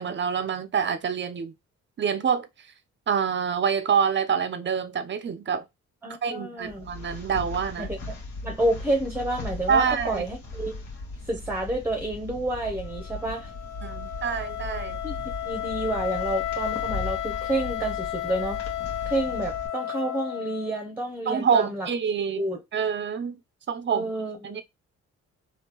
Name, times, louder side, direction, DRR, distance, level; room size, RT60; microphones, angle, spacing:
voice 1, 0.0-1.5 2.0-2.5 3.1-5.6 6.2-7.9 9.7-10.2 13.8-15.0 21.3-23.4 23.7-24.1 24.4-24.6, right 6 dB, 40° right, 0.5 m, -26 dB
voice 2, 6.0-6.9 7.8-8.2 8.4-10.8 11.3-13.5 15.0-15.2 15.4-18.6 19.1-21.9 22.4-22.6 23.9-24.6, right 1 dB, 5° right, 0.8 m, -29 dB
sound 1, 6.6-19.7, left 2 dB, 65° left, 1.3 m, -38 dB
Wind instrument woodwind instrument, 12.8-20.9, left 13 dB, 90° left, 0.5 m, -33 dB
3.5 x 2.4 x 2.9 m
cardioid pair, 90°, 30 cm